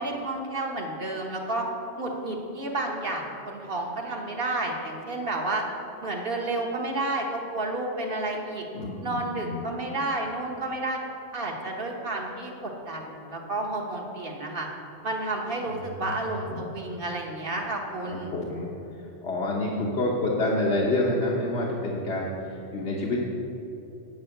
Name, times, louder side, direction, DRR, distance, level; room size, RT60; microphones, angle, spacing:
voice 1, 0.0-1.7 2.0-5.6 6.0-8.6 9.0-11.0 11.3-14.7 15.0-18.3, right 2 dB, 50° right, 0 dB, 1.3 m, -31 dB
voice 2, 8.7-9.7 15.7-15.9 16.3-16.7 18.3-18.7 19.2-23.2, left 2 dB, 60° left, -3 dB, 1.3 m, -28 dB
8.9 x 5.5 x 7.8 m, 2.9 s
omnidirectional pair, 1.3 m